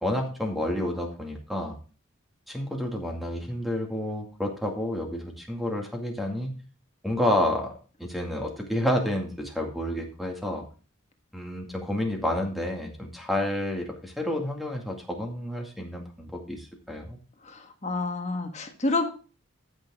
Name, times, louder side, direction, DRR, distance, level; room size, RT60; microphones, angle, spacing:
voice 1, 0.0-1.8 2.5-6.5 7.0-7.7 8.0-10.6 11.3-17.2, left 1 dB, ahead, 2 dB, 2.2 m, -30 dB
voice 2, 17.4-19.1, left 2 dB, 35° left, 5 dB, 1.6 m, -29 dB
14.0 x 6.4 x 3.6 m, 0.36 s
head